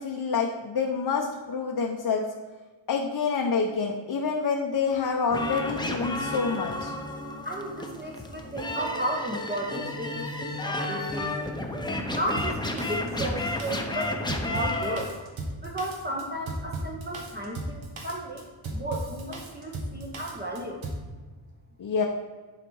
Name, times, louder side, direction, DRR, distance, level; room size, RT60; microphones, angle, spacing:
voice 1, 0.0-2.2 2.9-6.9 21.8-22.1, left 5 dB, 50° left, 1 dB, 0.9 m, -27 dB
sound 1, 5.3-15.0, left 2 dB, 10° left, 0.8 m, -32 dB
voice 2, 7.4-11.5 12.1-15.2 15.6-18.4 18.7-20.8, right 1 dB, 20° right, -2 dB, 0.9 m, -34 dB
Drum kit, 12.4-21.1, right 2 dB, 75° right, 1.6 m, -36 dB
11.0 x 4.1 x 4.7 m, 1.4 s
wide cardioid pair, 120°, 47 cm